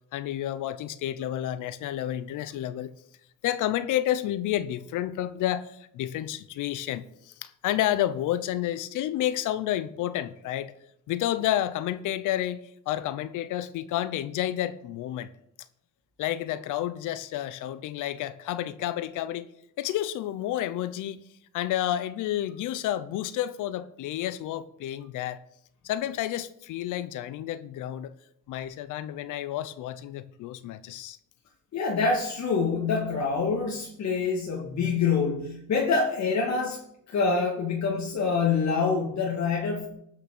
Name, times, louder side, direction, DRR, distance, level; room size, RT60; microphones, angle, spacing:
voice 1, 0.1-2.9 3.4-10.7 11.1-12.6 12.9-15.3 16.2-19.5 19.8-21.2 21.5-25.4 25.8-28.1 28.5-31.2, left 12 dB, 85° left, 15 dB, 0.7 m, -30 dB
voice 2, 31.7-36.8 37.1-39.9, left 4 dB, 65° left, -2 dB, 2.1 m, -26 dB
12.5 x 6.0 x 6.0 m, 0.74 s
cardioid pair, 90°, 30 cm